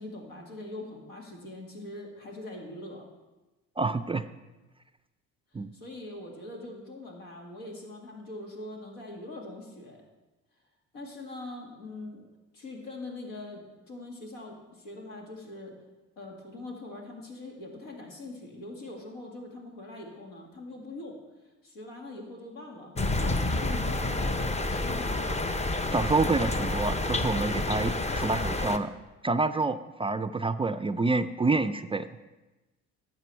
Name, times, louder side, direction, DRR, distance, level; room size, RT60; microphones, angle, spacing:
voice 1, 0.0-3.1 5.7-10.0 10.9-12.3 12.5-15.8 16.2-21.2 21.6-25.2, left 2 dB, 80° left, 0 dB, 2.2 m, -42 dB
voice 2, 3.8-4.3 5.5-5.7 25.9-28.9 29.2-32.1, right 3 dB, 15° right, 10 dB, 0.4 m, -27 dB
sound 1, 23.0-28.8, left 2 dB, 20° left, 0.7 m, -29 dB
12.0 x 7.3 x 4.6 m, 1.1 s
supercardioid pair, 65°, 33 cm